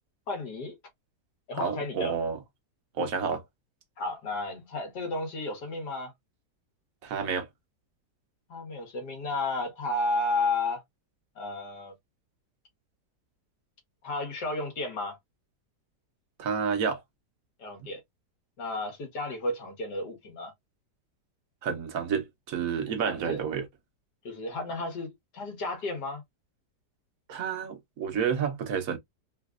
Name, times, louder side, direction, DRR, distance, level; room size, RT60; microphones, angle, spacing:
voice 1, 0.3-0.8 1.5-2.2 4.0-6.1 8.5-10.8 11.4-11.9 14.0-15.2 17.6-18.0 18.6-20.5 22.9-23.4 24.2-26.2, left 2 dB, 80° left, 2.0 m, -32 dB
voice 2, 1.6-2.4 3.0-3.4 7.0-7.5 16.4-17.0 21.6-23.7 27.3-29.0, right 6 dB, 60° right, 1.2 m, -30 dB
4.1 x 2.5 x 2.4 m
omnidirectional pair, 1.8 m